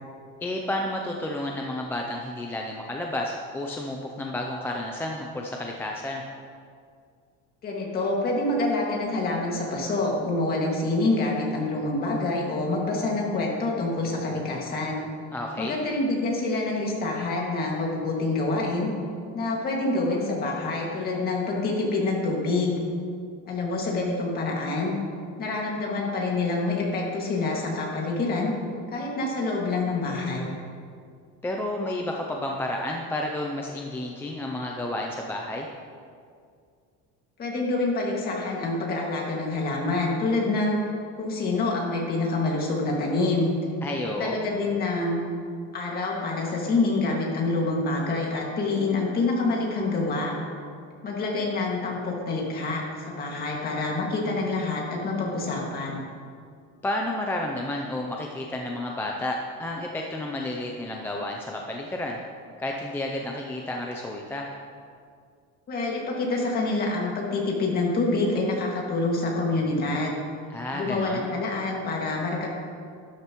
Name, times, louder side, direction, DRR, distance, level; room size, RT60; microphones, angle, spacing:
voice 1, 0.4-6.2 15.3-15.8 31.4-35.7 43.8-44.4 56.8-62.2 62.6-64.5 70.5-71.3, left 1 dB, 5° left, 0 dB, 0.4 m, -31 dB
voice 2, 7.6-15.1 15.6-18.9 19.3-22.8 23.5-24.9 25.4-28.5 28.9-30.5 37.4-40.8 41.2-43.5 44.0-45.2 45.7-50.3 51.0-56.0 65.7-70.2 70.7-72.5, left 2 dB, 30° left, -2 dB, 2.0 m, -26 dB
12.5 x 11.5 x 3.0 m, 2.2 s
cardioid pair, 180°, 31 cm